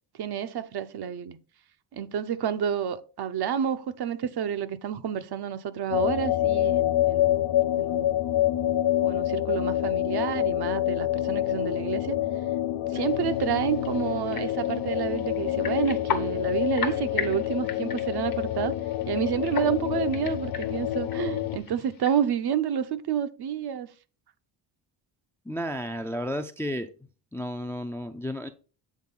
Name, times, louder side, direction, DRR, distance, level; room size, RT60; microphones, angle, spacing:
voice 1, 0.2-1.4 1.9-7.4 7.8-8.1 9.0-12.2 12.9-18.7 19.1-23.9, right 9 dB, 55° right, 0.6 m, -29 dB
sound 1, 5.9-21.6, left 13 dB, 85° left, 0.6 m, -27 dB
sound 2, 12.9-22.2, left 8 dB, 50° left, 0.8 m, -38 dB
voice 2, 25.5-26.9 27.3-28.5, equal, 5° left, 0.3 m, -32 dB
7.4 x 3.6 x 3.8 m
cardioid pair, 90°, 47 cm